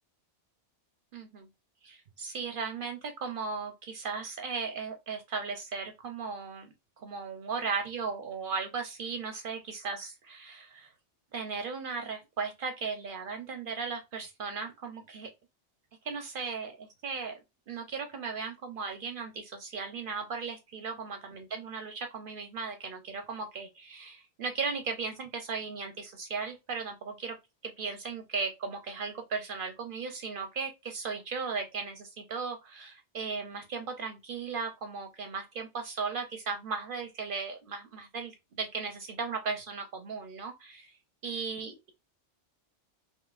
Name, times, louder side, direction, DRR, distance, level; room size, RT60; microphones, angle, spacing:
voice 1, 1.1-1.5 1.8-6.7 7.0-10.9 11.3-15.3 16.0-17.4 17.7-27.4 27.6-40.9 41.2-41.9, right 5 dB, 60° right, 0.6 m, -36 dB
3.8 x 2.7 x 2.3 m
omnidirectional pair, 1.2 m